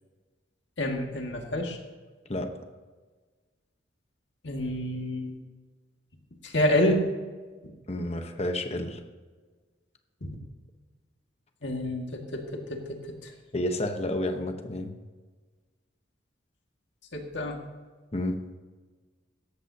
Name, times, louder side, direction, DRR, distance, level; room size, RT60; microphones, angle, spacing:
voice 1, 0.8-1.8 4.4-5.4 6.4-7.0 7.6-7.7 10.2-10.4 11.6-13.3 17.1-17.6, left 1 dB, 65° left, 2 dB, 2.0 m, -28 dB
voice 2, 7.9-9.0 13.5-14.9 18.1-18.4, left 1 dB, 35° left, 6 dB, 1.1 m, -30 dB
17.0 x 13.5 x 2.9 m, 1.4 s
head